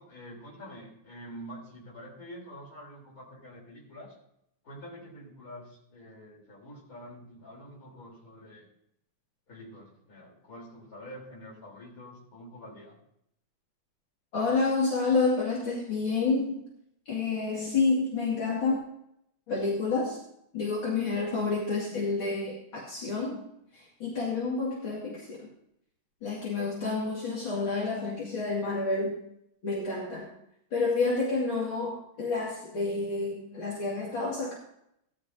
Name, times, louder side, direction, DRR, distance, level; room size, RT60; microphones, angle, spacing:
voice 1, 0.0-4.1 4.6-8.7 9.5-13.0, equal, 40° left, -3 dB, 4.0 m, -47 dB
voice 2, 14.3-16.6 17.1-18.8 19.5-20.2 20.5-23.5 23.7-25.5 26.2-29.2 29.6-30.3 30.7-34.5, left 3 dB, 65° left, -5 dB, 3.0 m, -29 dB
17.0 x 11.5 x 2.7 m, 0.76 s
omnidirectional pair, 2.4 m